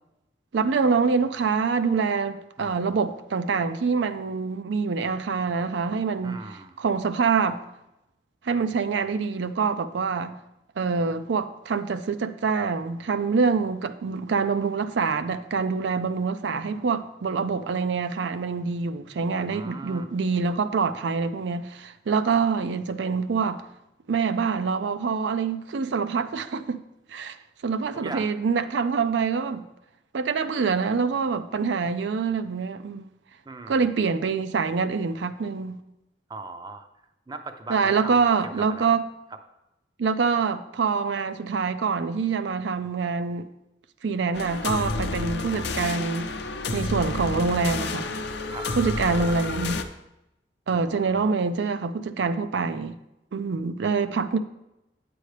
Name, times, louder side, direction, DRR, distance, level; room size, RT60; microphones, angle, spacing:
voice 1, 0.5-6.4 6.8-7.6 8.4-10.4 10.8-23.6 24.1-26.8 27.1-27.4 27.6-29.6 30.1-33.1 33.7-35.8 37.7-39.0 40.0-43.5 44.0-46.3 46.7-48.1 48.8-49.8 50.7-53.0 53.3-54.4, right 5 dB, 85° right, 0.4 m, -25 dB
voice 2, 2.6-3.0 6.2-6.8 19.4-20.1 27.9-28.3 33.5-33.8 36.3-36.9 37.3-39.0 48.4-48.7 50.7-51.3, right 3 dB, 25° right, 0.5 m, -39 dB
sound 1, 44.3-49.8, left 3 dB, 70° left, 0.6 m, -30 dB
9.3 x 7.8 x 3.3 m
head